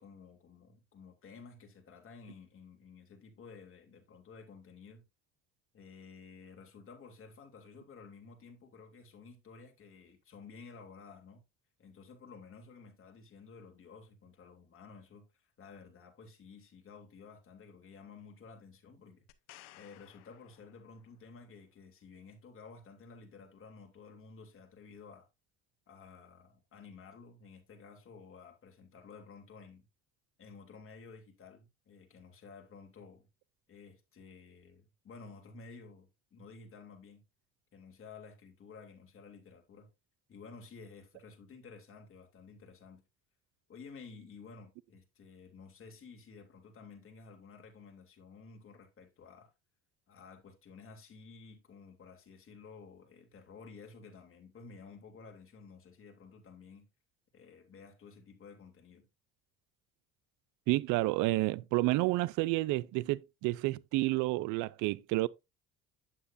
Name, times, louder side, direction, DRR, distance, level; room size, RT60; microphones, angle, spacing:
voice 1, 0.0-5.0 5.7-11.4 11.8-19.2 19.7-25.3 25.9-29.9 30.4-33.3 33.7-37.2 37.7-39.9 40.3-43.0 43.7-49.5 50.1-56.9 57.3-59.0, left 5 dB, 45° left, 3.1 m, -53 dB
sound 1, 19.3-21.3 24.9-25.0, left 16 dB, 90° left, 0.9 m, -58 dB
voice 2, 60.7-65.3, right 19 dB, 75° right, 0.5 m, -30 dB
9.3 x 7.3 x 2.6 m
supercardioid pair, 90°, 31 cm